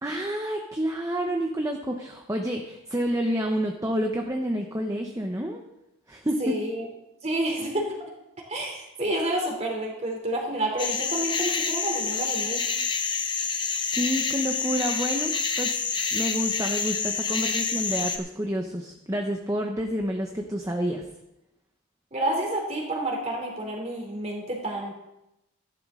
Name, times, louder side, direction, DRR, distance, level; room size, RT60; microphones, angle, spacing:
voice 1, 0.0-5.6 6.1-6.6 13.9-15.8 16.1-21.0, equal, 15° right, 2 dB, 0.8 m, -29 dB
voice 2, 6.4-6.9 7.2-7.9 8.5-12.7 22.1-24.9, right 1 dB, 30° right, 0 dB, 3.1 m, -29 dB
sound 1, 10.8-18.2, left 5 dB, 20° left, 0.8 m, -28 dB
15.0 x 11.5 x 3.7 m, 0.90 s
head